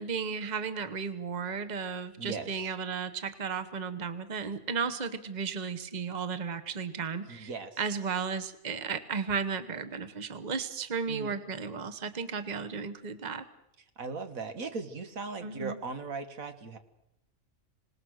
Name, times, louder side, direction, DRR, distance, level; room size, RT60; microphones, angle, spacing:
voice 1, 0.0-7.5 7.8-13.4 15.4-15.8, right 5 dB, 35° right, 11 dB, 1.2 m, -34 dB
voice 2, 2.2-2.5 7.3-7.7 11.1-11.4 14.0-16.8, right 4 dB, 85° right, 8 dB, 1.9 m, -38 dB
26.5 x 18.5 x 6.4 m, 0.81 s
omnidirectional pair, 1.4 m